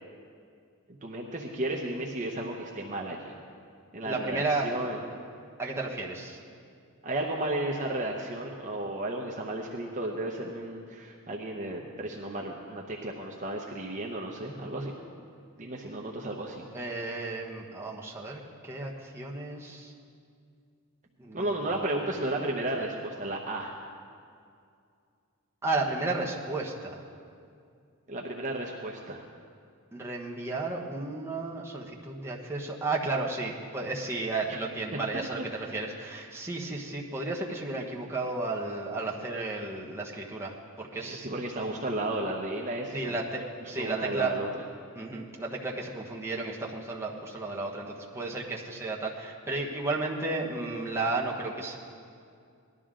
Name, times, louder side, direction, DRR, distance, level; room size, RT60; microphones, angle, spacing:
voice 1, 0.9-3.3 3.9-5.0 7.0-14.9 15.6-16.7 21.3-23.7 28.1-29.2 41.0-43.1 43.8-44.5, right 1 dB, 35° right, 0 dB, 0.8 m, -33 dB
voice 2, 4.0-4.7 5.6-6.4 16.7-19.9 21.2-21.7 25.6-27.0 29.9-41.3 42.9-44.3 45.0-51.8, right 3 dB, 10° right, -3 dB, 1.2 m, -33 dB
18.5 x 12.0 x 3.8 m, 2.3 s
head